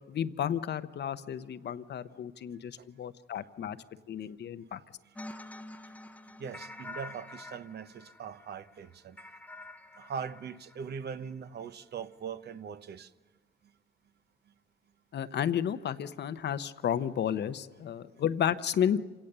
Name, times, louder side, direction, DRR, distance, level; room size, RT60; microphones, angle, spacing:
voice 1, 0.1-3.8 4.1-4.8 15.1-19.0, left 9 dB, 60° left, 0.9 m, -32 dB
sound 1, 5.2-11.3, left 2 dB, 5° left, 0.9 m, -47 dB
voice 2, 6.4-9.2 10.0-13.1, right 6 dB, 55° right, 0.9 m, -41 dB
27.5 x 17.5 x 6.8 m
cardioid pair, 90°, 20 cm